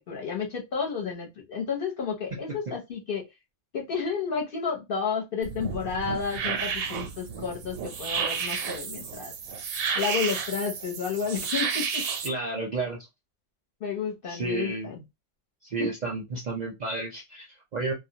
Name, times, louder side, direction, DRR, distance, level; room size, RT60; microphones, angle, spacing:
voice 1, 0.1-3.2 3.7-9.3 9.9-12.0 13.8-15.0 15.8-15.9, left 6 dB, 55° left, 0 dB, 0.9 m, -31 dB
sound 1, 5.4-12.3, right 6 dB, 90° right, 1.0 m, -31 dB
voice 2, 12.2-13.1 14.3-14.9 15.6-17.9, right 3 dB, 50° right, -1 dB, 0.5 m, -31 dB
2.3 x 2.1 x 2.7 m, 0.21 s
omnidirectional pair, 1.3 m